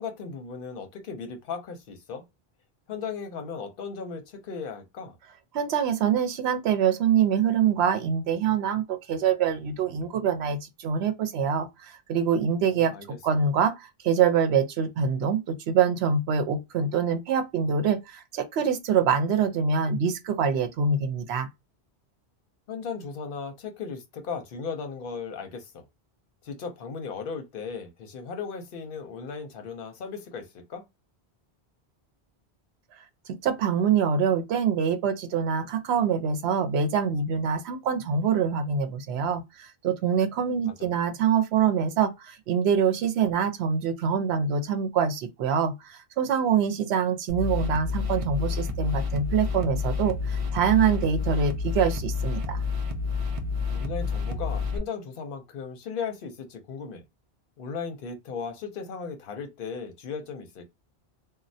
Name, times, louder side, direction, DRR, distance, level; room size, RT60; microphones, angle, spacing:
voice 1, 0.0-2.2 2.9-5.2 12.7-13.1 22.7-25.8 26.4-30.8 40.5-40.9 53.7-57.0 57.6-60.6, left 5 dB, 60° left, 0.8 m, -36 dB
voice 2, 5.5-12.9 13.2-21.5 33.4-52.6, right 7 dB, 80° right, 0.9 m, -25 dB
sound 1, 47.3-54.8, left 4 dB, 45° right, 0.5 m, -29 dB
3.1 x 2.2 x 2.6 m
omnidirectional pair, 1.1 m